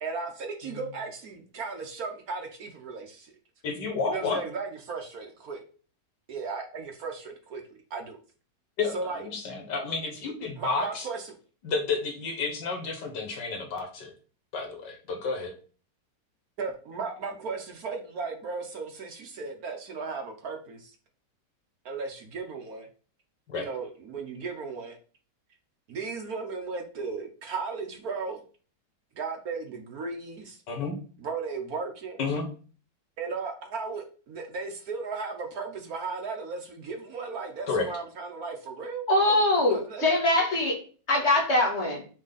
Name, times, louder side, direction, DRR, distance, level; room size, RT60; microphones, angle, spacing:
voice 1, 0.0-3.3 4.1-5.6 6.3-7.6 7.9-8.2 8.9-9.2 10.6-11.4 16.6-20.9 21.8-22.9 23.5-25.0 25.9-28.4 29.2-30.6 31.2-32.2 33.2-40.1, right 4 dB, 60° right, 4 dB, 1.3 m, -36 dB
voice 2, 3.6-4.4 8.8-11.1 11.6-14.1 14.5-15.6 23.5-23.7 30.7-31.0 32.2-32.5 37.7-37.9, left 4 dB, 80° left, 4 dB, 2.0 m, -31 dB
voice 3, 39.1-40.8 41.1-42.0, left 1 dB, 40° left, -1 dB, 2.1 m, -23 dB
6.5 x 3.6 x 4.0 m, 0.39 s
omnidirectional pair, 1.9 m